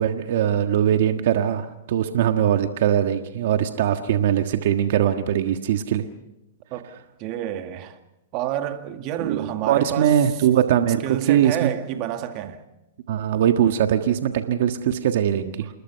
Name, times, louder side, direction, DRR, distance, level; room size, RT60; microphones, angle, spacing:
voice 1, 0.0-6.0 9.2-11.0 11.3-11.7 13.1-15.7, right 10 dB, 65° right, 1.5 m, -21 dB
voice 2, 7.2-8.0 8.3-10.2 11.0-12.6, right 11 dB, 40° right, 2.0 m, -29 dB
28.0 x 20.5 x 5.8 m
hypercardioid pair, 140°, 0 cm